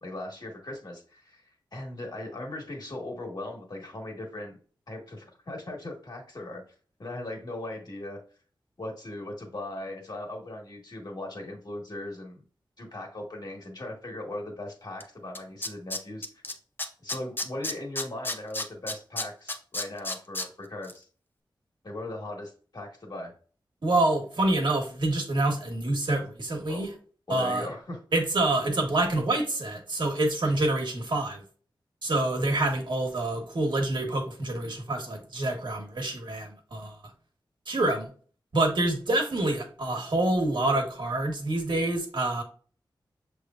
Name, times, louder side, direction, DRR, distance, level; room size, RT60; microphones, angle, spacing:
voice 1, 0.0-4.6 4.9-6.6 7.0-8.2 8.8-12.4 12.8-16.2 17.0-21.1 21.8-23.3 26.7-26.8 27.3-28.0, left 1 dB, 55° left, 1 dB, 1.6 m, -38 dB
Tools, 15.0-15.1 15.3-16.5 16.8-20.5 20.8-20.9, left 2 dB, 25° left, 0.6 m, -31 dB
voice 2, 23.8-26.9 27.3-27.7 28.1-31.4 32.0-36.9 37.7-38.1 38.5-42.4, right 2 dB, 65° right, 2 dB, 1.3 m, -27 dB
6.6 x 3.1 x 2.5 m, 0.41 s
wide cardioid pair, 90°, 9 cm